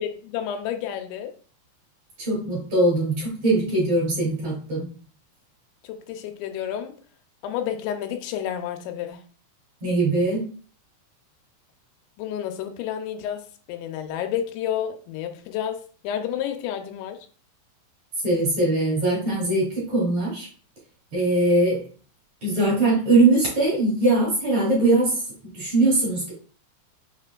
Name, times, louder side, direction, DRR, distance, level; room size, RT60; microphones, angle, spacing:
voice 1, 0.0-1.3 5.8-6.9 7.4-9.2 12.2-17.2, left 9 dB, 85° left, 6 dB, 2.9 m, -30 dB
voice 2, 2.2-4.9 9.8-10.4 18.2-20.5 21.1-21.8 22.4-25.2 25.5-26.3, right 2 dB, 50° right, -6 dB, 2.3 m, -21 dB
6.2 x 3.3 x 2.2 m, 0.42 s
omnidirectional pair, 5.0 m